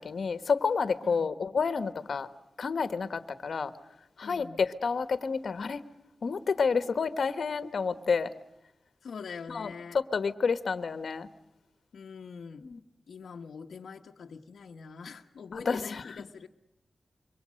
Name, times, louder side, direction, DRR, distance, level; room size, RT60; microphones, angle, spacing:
voice 1, 0.0-2.3 2.6-3.7 4.2-5.8 6.2-8.3 9.5-11.3 12.6-12.8 15.6-16.0, left 5 dB, 70° left, 12 dB, 1.4 m, -29 dB
voice 2, 4.2-4.6 9.0-10.0 11.9-12.7 13.1-16.5, left 5 dB, 85° left, 2 dB, 1.2 m, -44 dB
27.5 x 24.0 x 6.5 m, 0.86 s
wide cardioid pair, 80°, 0 cm